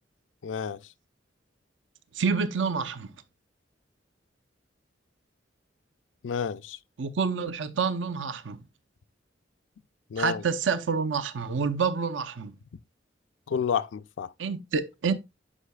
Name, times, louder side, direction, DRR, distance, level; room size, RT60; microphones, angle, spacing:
voice 1, 0.4-0.8 6.2-6.8 10.1-10.4 13.5-14.3, left 7 dB, 85° left, 0.4 m, -30 dB
voice 2, 2.2-3.1 7.0-8.6 10.2-12.5 14.4-15.1, right 5 dB, 90° right, 0.7 m, -28 dB
9.8 x 5.6 x 2.3 m
head